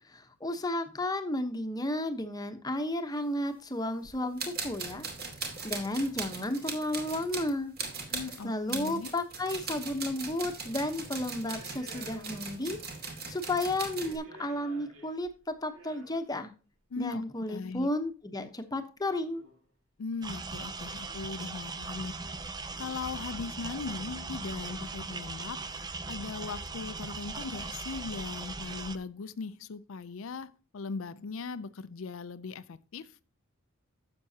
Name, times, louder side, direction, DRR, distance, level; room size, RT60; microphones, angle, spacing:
voice 1, 0.1-5.1 5.4-7.7 8.4-12.8 13.3-15.3 15.6-16.5 17.0-19.4, left 1 dB, 15° left, 1.0 m, -33 dB
sound 1, 4.0-4.1 4.4-14.2, right 4 dB, 45° right, 2.4 m, -39 dB
voice 2, 8.1-9.1 16.9-17.2 17.5-17.9 20.0-33.2, left 4 dB, 65° left, 0.5 m, -39 dB
sound 2, 10.6-10.9 11.4-12.8 13.1-13.2 13.8-16.4 17.4-17.5 19.1-19.6 20.1-20.2 20.5-20.9 21.2-21.6 22.1-22.3 22.7-23.7 24.1-25.0 25.4-25.6 25.9-26.3 26.7-27.2, right 1 dB, 70° right, 3.3 m, -54 dB
sound 3, 20.2-29.0, right 3 dB, 20° right, 0.5 m, -39 dB
12.0 x 7.6 x 2.8 m
head